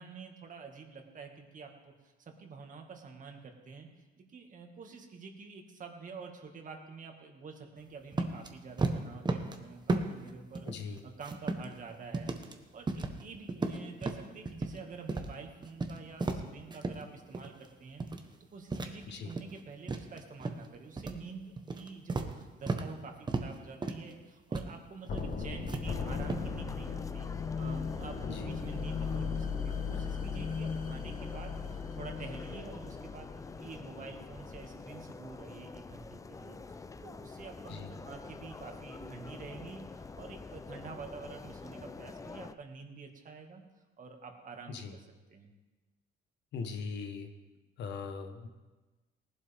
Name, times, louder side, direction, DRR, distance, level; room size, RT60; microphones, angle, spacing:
voice 1, 0.0-3.9 4.2-12.3 12.7-18.1 18.5-27.3 27.6-43.6 44.0-45.5, right 4 dB, 45° right, 3 dB, 2.1 m, -48 dB
sound 1, 8.1-8.5 8.8-9.6 9.9-10.3 10.5-11.8 12.1-12.5 12.9-13.2 13.5-14.8 15.1-15.3 15.6-17.0 17.3-17.6 18.0-18.3 18.7-19.6 19.9-20.6 21.0-21.2 21.6-22.9 23.3-23.5 23.8-24.1 24.5-24.7 25.0-25.3 25.7-26.5, right 3 dB, 25° right, 1.2 m, -34 dB
voice 2, 10.6-11.0 19.1-19.3 28.3-28.5 37.7-38.0 44.7-45.0 46.5-47.3 47.8-48.5, left 5 dB, 70° left, 7 dB, 1.4 m, -40 dB
sound 2, 25.1-33.9, left 5 dB, 45° left, 1.3 m, -37 dB
sound 3, 25.8-42.5, left 4 dB, 15° left, 0.5 m, -46 dB
18.5 x 11.5 x 3.6 m, 1.2 s
cardioid pair, 100°, 19 cm